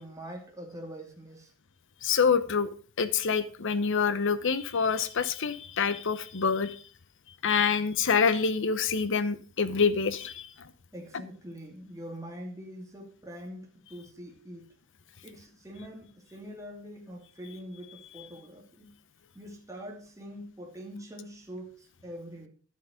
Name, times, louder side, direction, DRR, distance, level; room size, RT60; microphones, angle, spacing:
voice 1, 0.0-1.5 10.9-14.7 15.2-19.0 19.3-22.5, equal, 15° right, 0 dB, 2.3 m, -44 dB
voice 2, 2.0-2.7 3.0-6.8 7.4-10.7, left 5 dB, 60° left, 13 dB, 0.9 m, -26 dB
11.5 x 7.5 x 5.0 m, 0.40 s
head